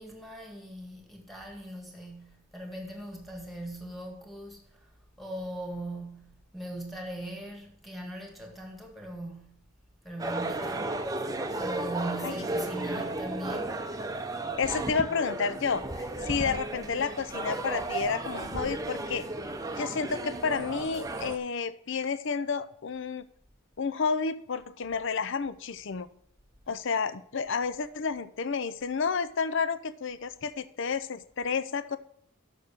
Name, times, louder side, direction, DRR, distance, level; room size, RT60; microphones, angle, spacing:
voice 1, 0.0-4.9 5.2-9.6 10.0-11.1 11.6-13.8 26.7-26.8, right 1 dB, ahead, 1.8 m, -40 dB
sound 1, 10.2-21.4, right 2 dB, 15° right, 0.6 m, -34 dB
voice 2, 14.6-19.3 19.8-23.3 23.8-26.1 26.7-32.0, left 5 dB, 60° left, 0.5 m, -30 dB
6.9 x 6.4 x 6.9 m
head